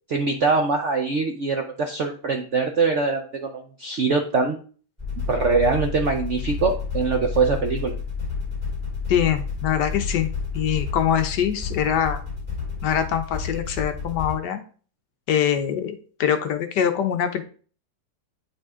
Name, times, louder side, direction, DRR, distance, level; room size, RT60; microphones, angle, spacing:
voice 1, 0.1-4.6 5.3-7.9, right 4 dB, 65° right, 4 dB, 0.7 m, -23 dB
sound 1, 5.0-14.3, left 5 dB, 15° right, 4.2 m, -30 dB
voice 2, 9.1-12.2 12.8-14.6 15.3-17.4, left 9 dB, 70° left, 8 dB, 1.2 m, -23 dB
9.0 x 5.3 x 3.6 m, 0.42 s
omnidirectional pair, 2.1 m